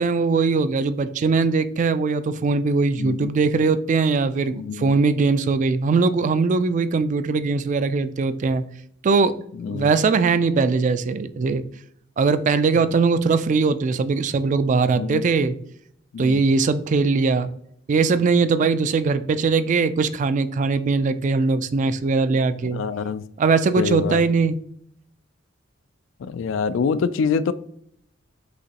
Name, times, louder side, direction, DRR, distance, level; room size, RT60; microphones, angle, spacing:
voice 1, 0.0-8.6 9.0-9.4 9.7-11.6 12.2-15.5 16.2-17.5 17.9-22.8 23.4-24.6, right 4 dB, 40° right, 0.3 m, -20 dB
voice 2, 3.0-3.3 4.6-4.9 9.6-9.9 14.9-15.2 16.1-16.4 22.7-23.2 23.8-24.2 26.2-27.5, left 6 dB, 75° left, 0.3 m, -25 dB
6.3 x 2.9 x 2.8 m
head